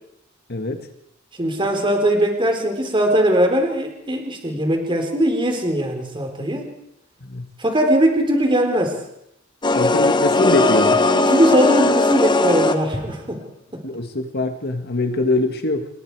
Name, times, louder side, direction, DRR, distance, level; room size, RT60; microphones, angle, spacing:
voice 1, 0.5-0.8 7.2-7.5 9.7-11.0 13.8-15.9, left 2 dB, 50° left, 6 dB, 1.7 m, -23 dB
voice 2, 1.4-6.7 7.6-9.0 11.1-13.4 13.7-13.8, equal, 25° right, 3 dB, 4.0 m, -20 dB
sound 1, 9.6-13.1, left 2 dB, 20° left, 1.2 m, -18 dB
28.0 x 20.5 x 4.8 m, 0.79 s
head